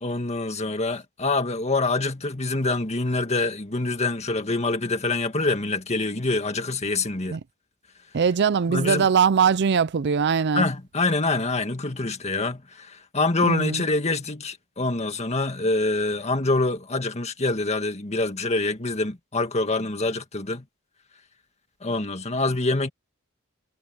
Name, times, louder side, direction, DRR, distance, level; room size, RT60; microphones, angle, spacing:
voice 1, 0.0-7.4 8.7-9.1 10.5-20.6 21.8-22.9, left 2 dB, 30° left, 2.0 m, -25 dB
voice 2, 8.1-10.6 13.4-13.8, right 6 dB, 55° right, 0.5 m, -21 dB
head